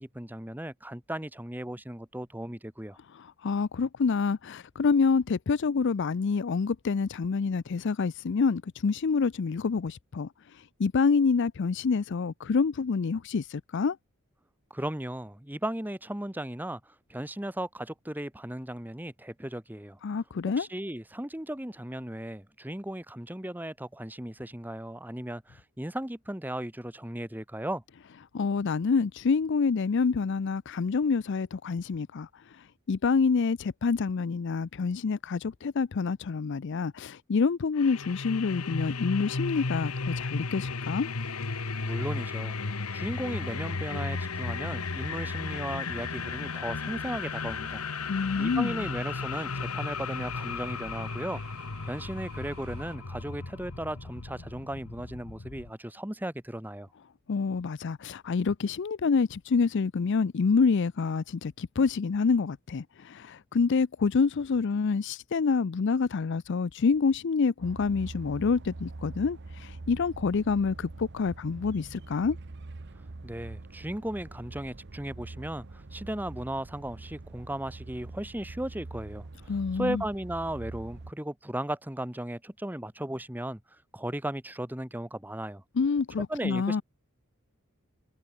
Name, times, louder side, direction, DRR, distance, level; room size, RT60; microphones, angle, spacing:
voice 1, 0.0-3.0 14.7-20.0 20.6-27.8 41.8-47.8 48.4-51.4 51.8-56.9 73.2-79.3 79.7-83.6 83.9-85.6 86.3-86.8, right 1 dB, 10° right, 1.2 m, -36 dB
voice 2, 3.4-10.3 10.8-14.0 20.0-20.7 28.3-32.3 32.9-41.1 48.1-48.9 57.3-72.4 79.5-80.0 85.8-86.8, left 5 dB, 55° left, 0.4 m, -27 dB
sound 1, 37.8-55.7, left 4 dB, 80° left, 1.3 m, -35 dB
sound 2, 41.2-53.0, right 6 dB, 75° right, 5.3 m, -55 dB
sound 3, 67.6-81.1, right 2 dB, 50° right, 0.8 m, -44 dB
head